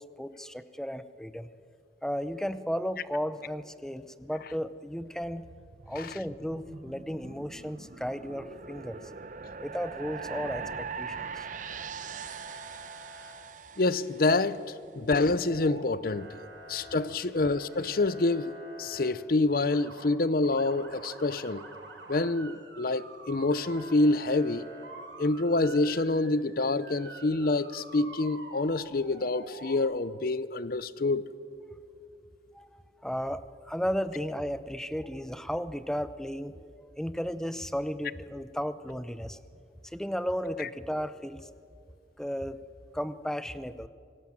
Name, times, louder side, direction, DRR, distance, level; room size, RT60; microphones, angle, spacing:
voice 1, 0.0-1.5 2.0-5.5 5.9-9.0 9.6-11.5 14.9-15.0 16.8-17.2 32.5-36.6 37.0-39.4 39.8-41.5 42.2-42.6 42.9-43.9, equal, 5° left, 0.6 m, -34 dB
sound 1, 5.2-14.6, right 5 dB, 45° right, 0.8 m, -42 dB
Motor vehicle (road) / Siren, 9.8-10.8 11.1-11.6 12.0-13.3 15.2-15.8 16.1-19.1 19.5-20.0 20.4-29.8, right 2 dB, 80° right, 5.2 m, -48 dB
voice 2, 13.8-14.6 14.9-16.4 16.7-21.6 22.1-24.7 25.2-31.2, left 2 dB, 55° left, 0.7 m, -27 dB
27.0 x 19.0 x 7.5 m
head